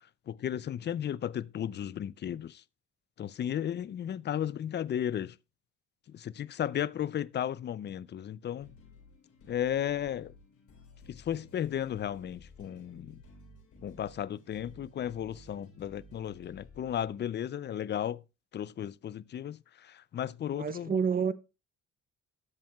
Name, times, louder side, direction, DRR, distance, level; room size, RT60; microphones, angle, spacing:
voice 1, 0.3-2.6 3.2-5.3 6.1-8.7 9.4-10.3 11.1-13.2 13.8-18.2 18.5-20.9, left 10 dB, 35° left, 0.4 m, -34 dB
sound 1, 8.5-17.1, left 2 dB, 80° left, 3.5 m, -55 dB
voice 2, 20.6-21.3, right 6 dB, 30° right, 0.6 m, -28 dB
12.5 x 7.5 x 2.3 m
cardioid pair, 90°, 30 cm